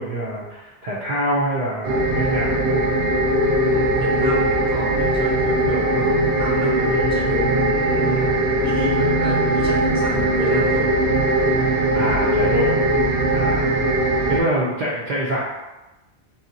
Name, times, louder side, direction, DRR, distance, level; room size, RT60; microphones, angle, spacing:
voice 1, 0.0-2.9 11.9-12.8 13.3-13.7 14.3-15.4, right 1 dB, 55° right, -6 dB, 0.6 m, -25 dB
sound 1, 1.8-14.4, right 1 dB, 90° right, 0.9 m, -20 dB
voice 2, 3.7-8.4 8.6-10.9 13.7-13.9, left 1 dB, 5° right, -6 dB, 0.6 m, -31 dB
2.7 x 2.0 x 3.8 m, 1.0 s
omnidirectional pair, 1.1 m